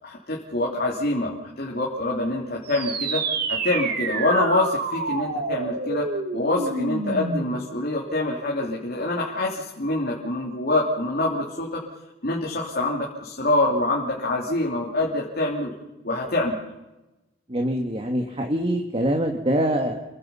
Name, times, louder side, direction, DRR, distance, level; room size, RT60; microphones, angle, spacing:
voice 1, 0.0-3.2 3.5-6.1 6.3-11.8 12.2-15.7 16.0-16.6, left 2 dB, 50° left, -3 dB, 3.2 m, -25 dB
sound 1, 2.6-7.7, right 3 dB, 55° right, 2.6 m, -28 dB
voice 2, 17.5-20.0, right 1 dB, 30° right, 3 dB, 1.8 m, -24 dB
29.0 x 23.0 x 5.7 m, 1.1 s
head